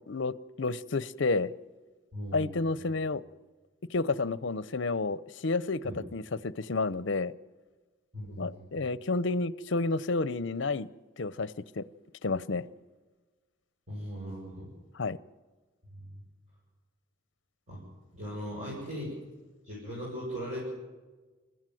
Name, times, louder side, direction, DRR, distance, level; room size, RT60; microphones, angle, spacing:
voice 1, 0.1-1.5 2.3-3.2 3.9-7.3 8.4-10.9 11.2-11.9 12.2-12.6 14.9-15.2, left 3 dB, 65° left, 17 dB, 0.7 m, -30 dB
voice 2, 2.1-2.8 5.8-6.0 8.1-8.7 13.9-14.7 15.9-16.2 17.7-17.8 18.1-19.1 19.6-20.6, equal, 35° right, -6 dB, 7.0 m, -39 dB
28.0 x 14.5 x 7.8 m, 1.3 s
head